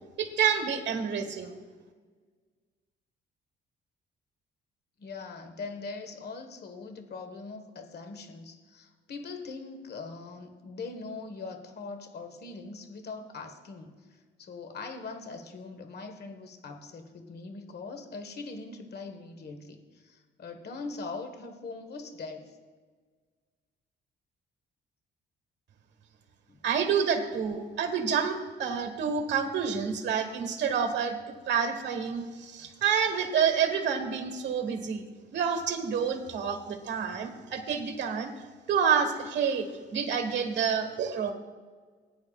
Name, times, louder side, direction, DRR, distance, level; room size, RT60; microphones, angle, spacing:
voice 1, 0.2-1.5 26.6-31.2 31.5-35.0 35.3-38.3 38.7-41.3, right 7 dB, 65° right, 6 dB, 1.5 m, -28 dB
voice 2, 5.0-14.0 14.4-22.5 26.5-26.7, left 4 dB, 55° left, 6 dB, 1.5 m, -41 dB
19.5 x 9.5 x 2.5 m, 1.5 s
cardioid pair, 90°, 20 cm